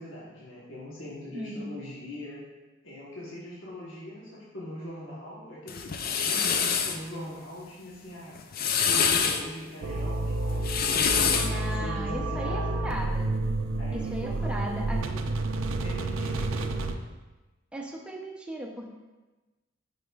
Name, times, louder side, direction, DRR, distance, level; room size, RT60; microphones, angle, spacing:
voice 1, 0.0-2.4 2.8-8.4 8.8-13.2 13.8-15.2 15.8-16.8, left 1 dB, 70° left, -7 dB, 1.2 m, -41 dB
voice 2, 1.3-1.7 11.4-13.3 13.9-15.1 17.7-18.9, equal, 5° right, 0 dB, 0.6 m, -37 dB
sound 1, 5.7-7.0 8.4-9.4 10.5-11.6, left 6 dB, 45° left, 0.4 m, -25 dB
sound 2, 9.8-16.9, right 2 dB, 80° right, 0.4 m, -30 dB
8.3 x 5.1 x 2.4 m, 1.1 s
head